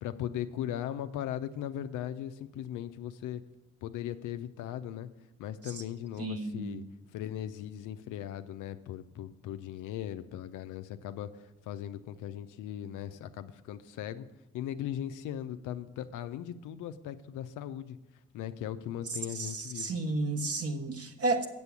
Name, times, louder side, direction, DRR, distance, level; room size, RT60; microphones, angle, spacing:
voice 1, 0.0-3.4 3.8-5.1 5.4-6.8 7.1-14.3 14.5-18.0 18.3-19.9, left 10 dB, 80° left, 10 dB, 0.6 m, -38 dB
voice 2, 6.2-6.9 19.3-21.5, right 2 dB, 50° right, 5 dB, 1.5 m, -32 dB
8.1 x 6.9 x 7.0 m, 0.95 s
supercardioid pair, 60°, 30 cm